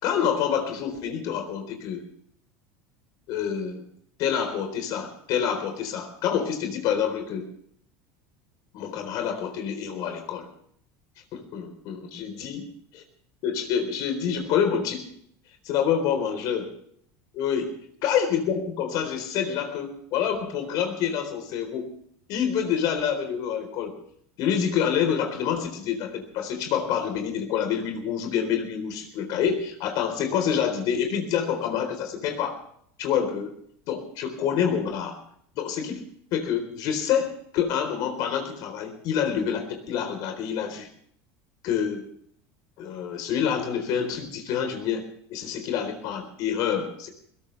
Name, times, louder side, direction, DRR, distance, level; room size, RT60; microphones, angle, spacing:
voice 1, 0.0-2.0 3.3-3.9 4.2-7.5 8.7-10.5 11.3-12.6 12.9-13.0 13.4-15.1 15.7-16.6 17.3-17.7 18.0-21.9 22.3-23.9 24.4-32.6 33.0-33.5 33.9-35.2 35.6-36.0 36.3-40.9 41.6-42.0 42.8-47.1, left 8 dB, 55° left, 6 dB, 4.1 m, -27 dB
21.0 x 18.0 x 3.4 m, 0.65 s
supercardioid pair, 130°, 8 cm